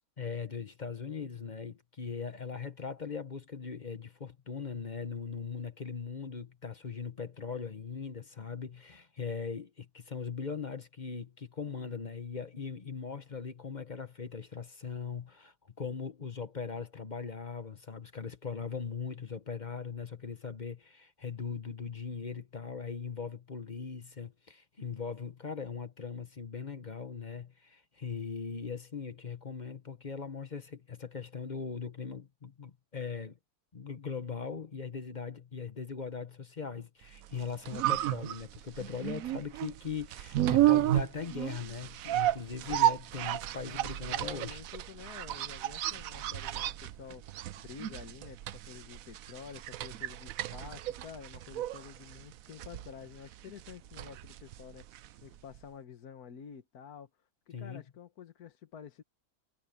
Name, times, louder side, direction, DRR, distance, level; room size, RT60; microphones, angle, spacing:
voice 1, 0.2-33.4 33.7-44.6 57.5-57.8, left 5 dB, 35° left, 1.1 m, -40 dB
sound 1, 37.3-55.3 55.5-55.6, right 14 dB, 70° right, 1.0 m, -32 dB
voice 2, 43.6-54.9 55.2-57.1 57.5-59.0, left 7 dB, 80° left, 1.7 m, -49 dB
omnidirectional pair, 1.6 m